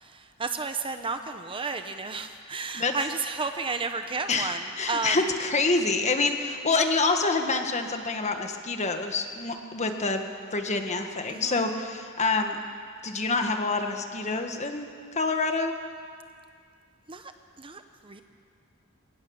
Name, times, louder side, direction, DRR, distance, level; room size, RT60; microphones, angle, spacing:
voice 1, 0.0-5.3 11.3-11.6 17.1-17.3 17.6-18.2, right 4 dB, 25° right, 8 dB, 0.9 m, -32 dB
voice 2, 4.3-12.6 13.0-15.8, left 3 dB, 35° left, 5 dB, 1.6 m, -27 dB
23.5 x 18.5 x 7.1 m, 2.2 s
head